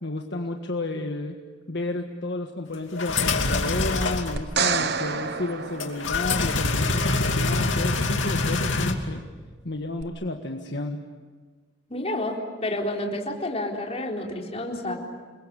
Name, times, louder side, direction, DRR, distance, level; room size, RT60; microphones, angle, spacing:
voice 1, 0.0-1.3 1.7-9.2 9.6-11.0 11.9-12.0, left 2 dB, 60° left, 3 dB, 1.6 m, -31 dB
sound 1, 3.0-4.3 5.8-8.9, left 3 dB, 75° left, 2.7 m, -24 dB
sound 2, 4.4-6.7 10.0-10.1, right 6 dB, 55° right, 1.2 m, -28 dB
voice 2, 11.9-15.0, left 1 dB, 30° left, 0 dB, 4.1 m, -29 dB
29.0 x 22.0 x 8.8 m, 1.4 s
head